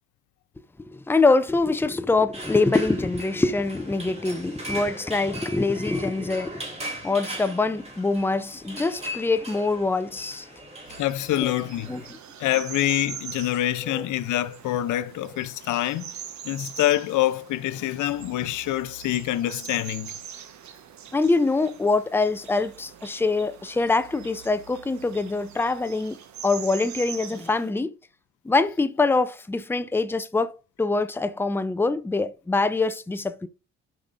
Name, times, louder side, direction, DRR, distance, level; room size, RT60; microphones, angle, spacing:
voice 1, 0.8-6.7 7.0-10.5 11.4-11.5 11.9-12.0 13.8-14.1 21.1-26.2 26.4-27.9 28.4-30.5 30.8-33.5, left 3 dB, 5° left, 0.5 m, -24 dB
sound 1, 2.3-12.1, right 1 dB, 20° right, 2.9 m, -39 dB
sound 2, 10.9-27.7, right 8 dB, 65° right, 1.2 m, -42 dB
voice 2, 11.0-11.9 12.4-16.1 16.4-20.1, left 14 dB, 80° left, 0.6 m, -26 dB
13.0 x 5.2 x 2.5 m
cardioid pair, 90°, 30 cm